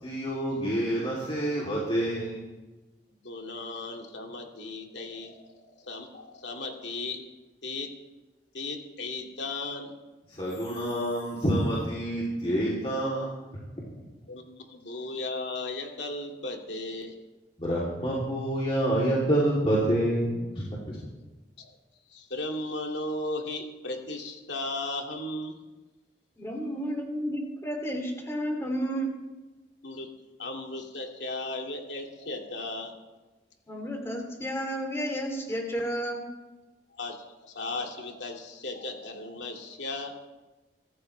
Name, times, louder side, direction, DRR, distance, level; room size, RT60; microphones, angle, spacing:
voice 1, 0.0-2.5 10.3-13.5 17.6-20.4 20.9-21.0, right 1 dB, 30° left, -6 dB, 3.0 m, -27 dB
voice 2, 3.2-5.5 5.9-7.2 7.6-7.9 8.5-9.9 14.3-17.1 21.6-21.8 22.1-25.6 29.8-30.1 30.4-32.9 36.9-37.2 37.4-40.2, left 2 dB, 75° left, 2 dB, 2.4 m, -36 dB
voice 3, 26.4-29.1 33.7-36.3, equal, 15° left, 2 dB, 2.8 m, -32 dB
24.5 x 14.0 x 3.3 m, 1.1 s
head